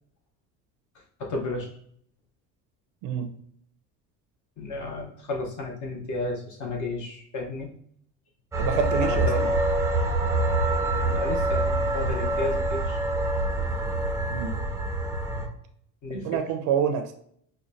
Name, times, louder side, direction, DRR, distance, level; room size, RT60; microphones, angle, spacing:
voice 1, 1.2-1.7 4.6-7.7 9.0-9.4 11.0-13.0 16.0-16.3, left 2 dB, 50° left, 0 dB, 0.9 m, -32 dB
sound 1, 8.5-15.5, right 2 dB, 10° right, 0.5 m, -25 dB
voice 2, 8.6-9.3 14.3-14.5 16.2-17.1, right 8 dB, 60° right, 5 dB, 0.5 m, -27 dB
5.1 x 2.2 x 2.5 m, 0.65 s
supercardioid pair, 115°, 39 cm